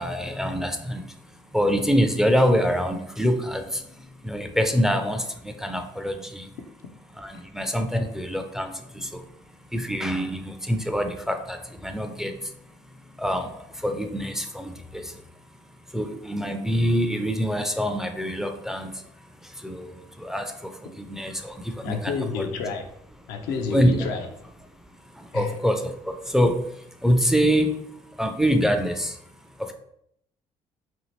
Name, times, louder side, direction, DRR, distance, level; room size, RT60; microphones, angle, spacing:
voice 1, 0.0-6.6 7.1-15.2 15.9-22.5 23.7-24.1 24.9-29.7, equal, 5° right, 6 dB, 0.4 m, -26 dB
voice 2, 21.8-22.9 23.3-24.5 25.3-25.5, left 5 dB, 70° left, 4 dB, 0.5 m, -30 dB
2.8 x 2.5 x 3.1 m, 0.73 s
hypercardioid pair, 55°, 16 cm